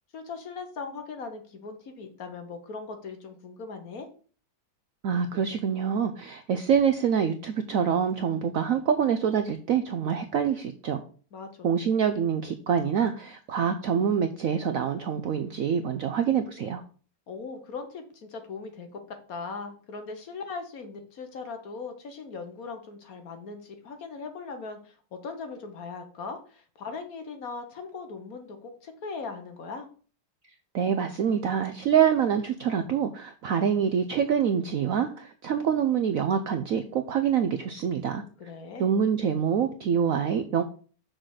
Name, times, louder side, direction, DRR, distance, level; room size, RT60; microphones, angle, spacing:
voice 1, 0.1-4.1 11.3-11.8 17.3-29.9 38.4-38.9, left 4 dB, 50° left, 6 dB, 1.3 m, -39 dB
voice 2, 5.0-11.0 11.6-16.8 30.7-38.2 38.8-40.6, right 7 dB, 90° right, 9 dB, 0.7 m, -26 dB
6.2 x 4.1 x 6.4 m, 0.41 s
omnidirectional pair, 2.2 m